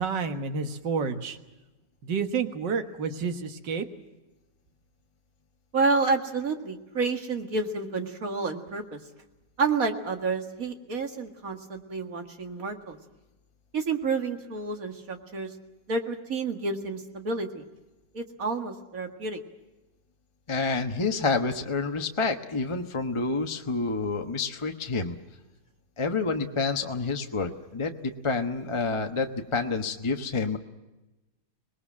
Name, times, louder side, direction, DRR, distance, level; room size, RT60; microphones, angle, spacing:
voice 1, 0.0-1.4 2.0-3.9, right 5 dB, 75° right, 7 dB, 2.1 m, -29 dB
voice 2, 5.7-9.0 9.6-13.0 13.7-15.5 15.9-17.6 18.1-19.4, right 4 dB, 50° right, 5 dB, 2.4 m, -29 dB
voice 3, 20.5-25.2 26.0-30.6, left 4 dB, 20° left, 5 dB, 1.0 m, -28 dB
26.0 x 20.0 x 7.4 m, 1.1 s
omnidirectional pair, 2.0 m